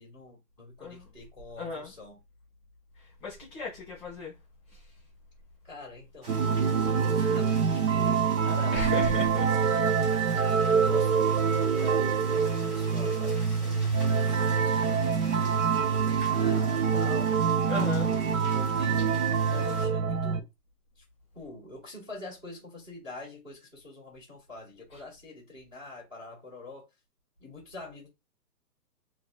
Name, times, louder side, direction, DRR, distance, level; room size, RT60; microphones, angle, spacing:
voice 1, 0.0-2.2 5.6-9.2 9.6-10.3 10.7-17.6 18.0-20.5 20.9-21.0 21.3-26.9 27.4-28.1, left 2 dB, 10° right, 1.2 m, -46 dB
voice 2, 1.6-1.9 3.0-4.3 4.7-4.9 8.7-9.5 11.6-11.8 17.7-18.2 24.9-25.0, left 3 dB, 15° left, 1.5 m, -36 dB
sound 1, 6.2-19.8, equal, 35° right, 2.2 m, -46 dB
sound 2, 6.3-20.4, right 6 dB, 55° right, 0.5 m, -25 dB
4.4 x 2.3 x 2.2 m
hypercardioid pair, 175°, 49 cm